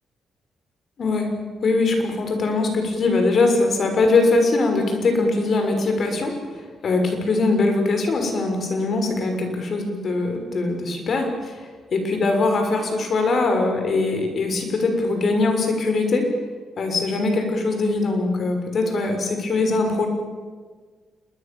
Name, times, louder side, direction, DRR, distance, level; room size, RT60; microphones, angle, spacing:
voice 1, 1.0-1.3 1.6-6.3 6.8-11.6 11.9-16.3 16.8-20.1, left 3 dB, 55° left, 5 dB, 6.4 m, -21 dB
27.5 x 21.5 x 7.2 m, 1.5 s
supercardioid pair, 50°, 0 cm